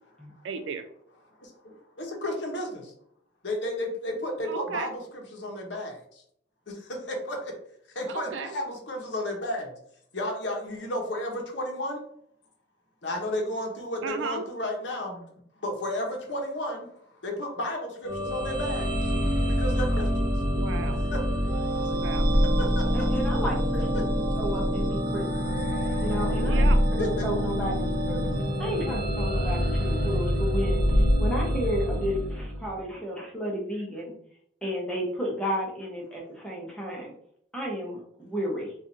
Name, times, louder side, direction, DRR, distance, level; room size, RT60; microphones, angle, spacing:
voice 1, 0.4-0.9 4.5-4.9 8.1-8.5 14.0-14.4 20.5-21.0 21.9-22.4 26.3-26.8, right 5 dB, 75° right, 8 dB, 0.4 m, -34 dB
voice 2, 1.4-2.9 3.4-6.2 6.7-7.5 7.9-9.7 10.1-12.0 13.0-15.2 15.6-16.9 17.2-19.1 19.5-20.3 21.1-21.2 22.6-22.8 27.0-27.3, left 1 dB, 65° left, 1 dB, 0.9 m, -33 dB
sound 1, 18.0-32.8, equal, 50° right, 0.9 m, -25 dB
voice 3, 22.9-25.2 26.0-26.6 26.9-28.3 28.6-34.2 34.6-37.1 37.5-38.7, equal, 5° left, -3 dB, 0.9 m, -32 dB
4.2 x 2.5 x 2.6 m, 0.66 s
head